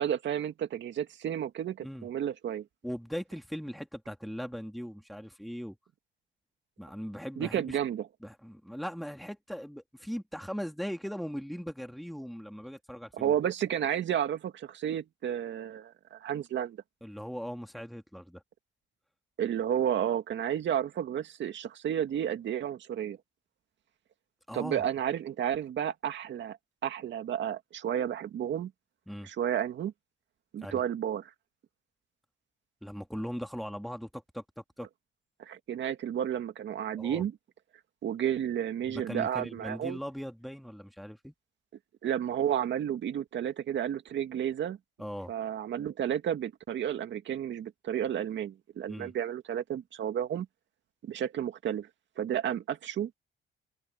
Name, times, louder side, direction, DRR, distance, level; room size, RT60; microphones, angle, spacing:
voice 1, 0.0-2.7 7.4-8.1 13.1-16.8 19.4-23.2 24.5-26.6 26.8-28.7 29.2-29.9 30.5-31.3 35.4-37.3 38.0-40.0 42.0-44.8 45.3-50.5 51.0-51.9 52.2-53.1, right 10 dB, 65° right, 2.1 m, -32 dB
voice 2, 2.8-5.8 6.8-7.8 8.2-13.4 17.0-18.4 24.5-24.9 29.1-29.3 30.6-30.8 32.8-34.9 37.0-37.2 38.8-41.3 45.0-45.3 48.9-49.1, equal, ahead, 2.5 m, -39 dB
cardioid pair, 90°, 20 cm